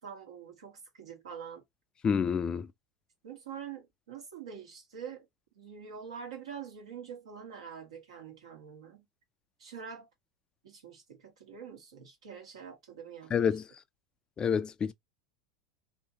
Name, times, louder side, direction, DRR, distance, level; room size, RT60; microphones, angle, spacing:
voice 1, 0.0-1.6 3.2-5.3 5.5-9.0 9.6-10.1 10.6-13.3, right 7 dB, 80° right, 1.3 m, -45 dB
voice 2, 2.0-2.7 13.3-13.6 14.4-14.9, left 7 dB, 30° left, 0.3 m, -28 dB
2.7 x 2.6 x 2.8 m
hypercardioid pair, 85°, 3 cm